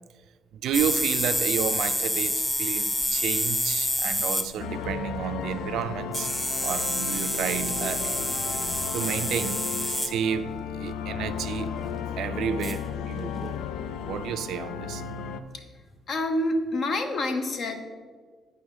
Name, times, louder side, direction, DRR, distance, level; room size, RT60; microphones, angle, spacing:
voice 1, 0.6-6.3 6.6-8.1 8.9-11.7 12.2-13.6 14.1-15.0, right 8 dB, 80° right, 0.4 m, -31 dB
sound 1, 0.7-4.5 4.9-5.0 6.1-10.1 11.3-11.5 12.6-13.0, left 1 dB, 15° left, 0.9 m, -28 dB
sound 2, 4.6-15.4, left 7 dB, 85° left, 0.4 m, -34 dB
voice 2, 16.1-17.8, left 1 dB, 60° left, 1.0 m, -27 dB
8.6 x 5.5 x 4.8 m
cardioid pair, 90°, 0 cm